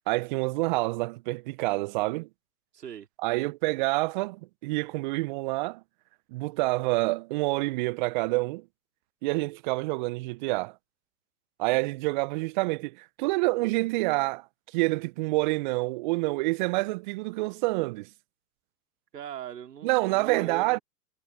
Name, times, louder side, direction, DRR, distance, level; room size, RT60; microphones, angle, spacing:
voice 1, 0.1-2.3 3.2-5.8 6.3-8.6 9.2-10.7 11.6-14.4 14.7-18.1 19.8-20.8, right 23 dB, 30° right, 0.5 m, -27 dB
voice 2, 2.7-3.1 19.1-20.8, right 9 dB, 75° right, 2.5 m, -40 dB
hypercardioid pair, 110°, 48 cm